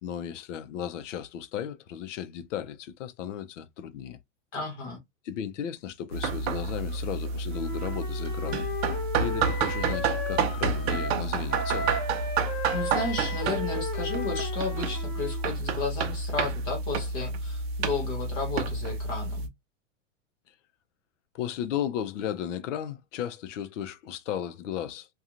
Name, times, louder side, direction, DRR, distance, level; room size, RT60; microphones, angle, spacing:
voice 1, 0.0-4.2 5.2-8.6 9.2-11.9 21.3-25.1, left 9 dB, 70° left, 0.6 m, -35 dB
voice 2, 4.5-5.0 12.7-19.5, left 3 dB, 15° left, 0.5 m, -33 dB
sound 1, 6.1-19.5, right 4 dB, 55° right, 0.6 m, -30 dB
Wind instrument woodwind instrument, 7.5-11.2 11.5-15.5, left 2 dB, 35° left, 0.9 m, -35 dB
2.5 x 2.3 x 2.7 m
supercardioid pair, 180°, 38 cm